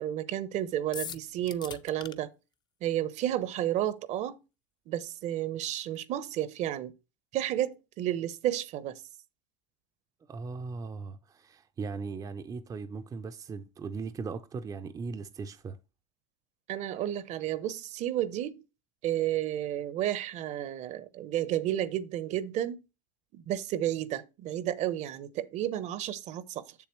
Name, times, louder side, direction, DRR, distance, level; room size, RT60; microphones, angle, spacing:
voice 1, 0.0-2.3 2.8-4.4 4.9-6.9 7.3-9.0 16.7-18.6 19.0-22.8 23.3-26.8, right 12 dB, 50° right, 0.9 m, -32 dB
sound 1, 0.9-2.1, left 7 dB, 30° left, 0.7 m, -40 dB
voice 2, 10.3-15.8, right 4 dB, 25° right, 0.6 m, -38 dB
7.3 x 7.1 x 3.1 m
hypercardioid pair, 95°, 16 cm